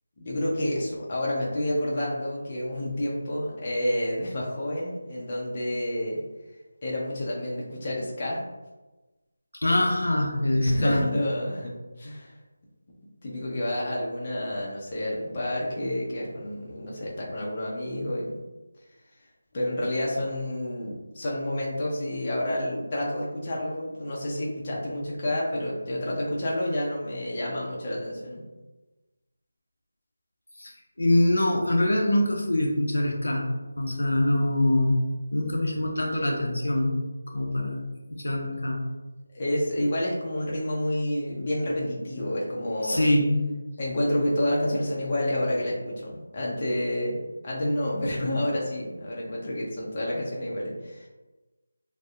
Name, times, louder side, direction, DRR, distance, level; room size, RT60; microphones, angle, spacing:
voice 1, 0.2-6.2 6.8-8.4 10.5-11.7 12.0-12.3 13.2-18.3 19.5-28.4 39.3-43.1 43.8-47.2 47.4-51.1, left 1 dB, 30° left, -4 dB, 0.5 m, -29 dB
voice 2, 9.6-11.1 30.6-30.7 31.0-33.5 33.8-37.0 37.3-38.9 42.8-43.5, left 1 dB, 80° left, 0 dB, 0.5 m, -24 dB
2.6 x 2.0 x 2.3 m, 1.1 s
figure-of-eight pair, 165°, 0 cm